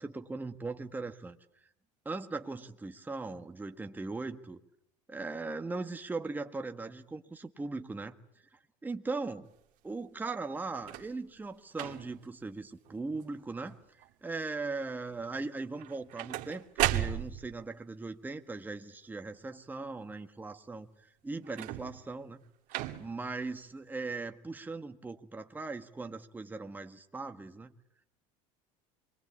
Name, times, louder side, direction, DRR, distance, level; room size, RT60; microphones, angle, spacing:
voice 1, 0.0-1.4 2.1-4.6 5.1-8.2 8.8-9.5 9.8-20.9 21.2-22.4 23.0-27.7, right 3 dB, 10° right, 1.7 m, -39 dB
sound 1, 10.7-11.2 11.7-12.3 12.9-13.2 13.5-14.1 15.8-17.6 21.4-22.1 22.7-23.3 24.1-24.2, right 14 dB, 60° right, 1.9 m, -35 dB
28.0 x 22.5 x 8.5 m
supercardioid pair, 120°, 16 cm